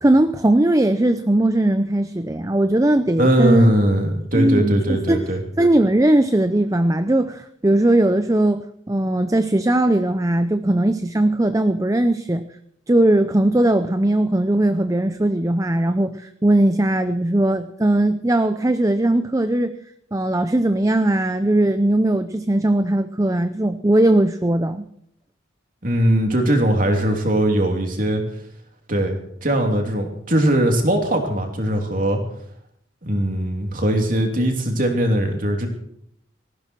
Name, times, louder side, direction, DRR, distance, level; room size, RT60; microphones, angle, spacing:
voice 1, 0.0-3.7 4.3-5.3 5.6-12.4 12.9-19.7 20.1-24.9, right 1 dB, 15° right, 10 dB, 0.6 m, -19 dB
voice 2, 3.2-5.4 25.8-28.2 28.9-32.2 33.0-35.7, right 1 dB, 45° right, 2 dB, 3.1 m, -20 dB
18.5 x 15.0 x 4.6 m, 0.71 s
head